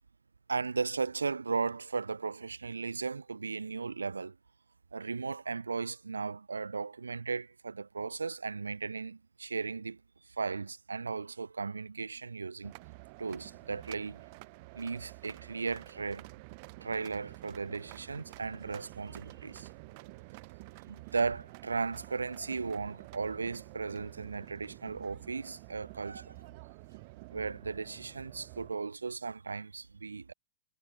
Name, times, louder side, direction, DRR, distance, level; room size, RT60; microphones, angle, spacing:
voice 1, 0.5-4.4 4.9-12.7 13.2-14.2 14.7-16.3 16.8-19.7 20.9-26.5 27.3-30.3, right 4 dB, 80° right, 2.6 m, -36 dB
sound 1, 12.6-28.7, right 28 dB, 45° right, 1.8 m, -50 dB
figure-of-eight pair, 100°, 0 cm